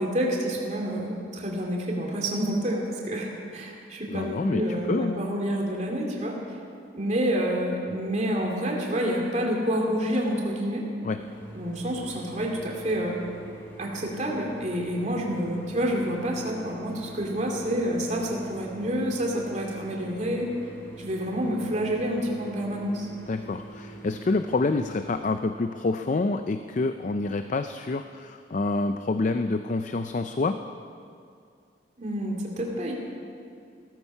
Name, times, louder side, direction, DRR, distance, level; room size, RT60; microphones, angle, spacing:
voice 1, 0.0-6.4 6.9-10.8 11.5-13.2 13.8-20.5 21.0-23.1 32.0-32.9, equal, 40° right, -1 dB, 2.7 m, -28 dB
voice 2, 4.1-5.2 11.0-11.2 23.3-30.6, left 3 dB, 40° left, 9 dB, 0.4 m, -27 dB
sound 1, 11.2-25.2, right 2 dB, 15° left, 2.8 m, -44 dB
16.5 x 14.0 x 5.5 m, 2.4 s
head